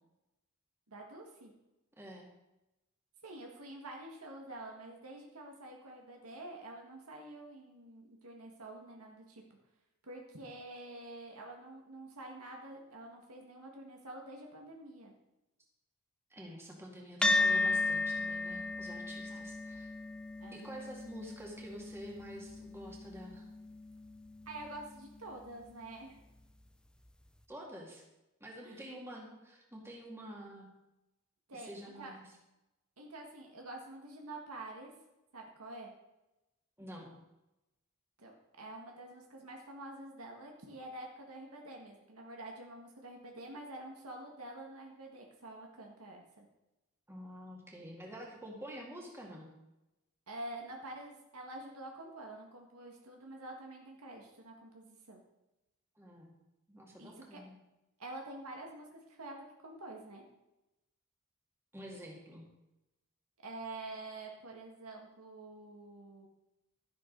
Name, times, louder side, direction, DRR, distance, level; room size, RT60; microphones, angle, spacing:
voice 1, 0.9-1.5 3.2-9.4 10.0-15.1 19.3-19.4 20.4-20.6 24.5-26.2 28.6-29.0 31.5-32.1 33.0-34.9 35.3-35.9 38.2-46.5 50.3-55.2 57.0-57.4 58.0-60.2 63.4-66.3, right 2 dB, 85° right, 1 dB, 1.8 m, -47 dB
voice 2, 2.0-2.3 16.3-19.9 20.5-23.5 27.5-28.0 28.4-30.7 31.5-32.2 36.8-37.2 47.1-49.5 56.0-56.3 56.7-57.5 61.7-62.5, equal, 10° right, -2 dB, 2.1 m, -48 dB
sound 1, 17.2-25.9, left 2 dB, 5° left, 0.6 m, -35 dB
12.0 x 11.0 x 4.0 m, 0.96 s
head